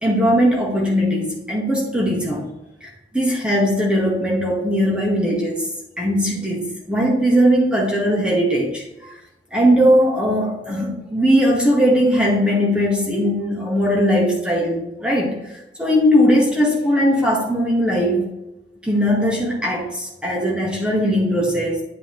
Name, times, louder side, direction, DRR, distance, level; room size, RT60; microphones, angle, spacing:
voice 1, 0.0-2.5 2.8-5.7 6.0-8.8 9.5-15.3 15.8-18.3 18.8-21.8, equal, 5° right, -2 dB, 1.7 m, -19 dB
9.7 x 5.3 x 3.2 m, 0.95 s
head